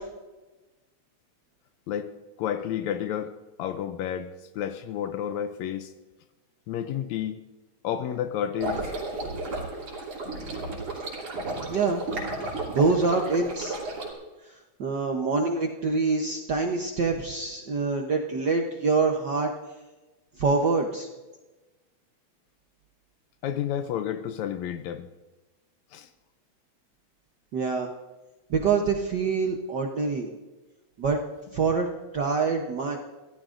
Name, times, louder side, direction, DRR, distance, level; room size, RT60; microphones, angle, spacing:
voice 1, 2.4-5.9 6.7-7.4 7.8-8.9 23.4-25.1 25.9-26.1, left 10 dB, 80° left, 10 dB, 1.9 m, -31 dB
sound 1, 8.6-14.1, right 2 dB, 60° right, 4.0 m, -33 dB
voice 2, 11.7-12.0 12.7-13.7 14.8-19.5 20.4-21.1 27.5-27.9 28.5-30.3 31.0-31.2 31.5-31.9 32.1-33.0, right 4 dB, 75° right, 2 dB, 0.9 m, -25 dB
24.5 x 15.5 x 2.6 m, 1.1 s
omnidirectional pair, 3.3 m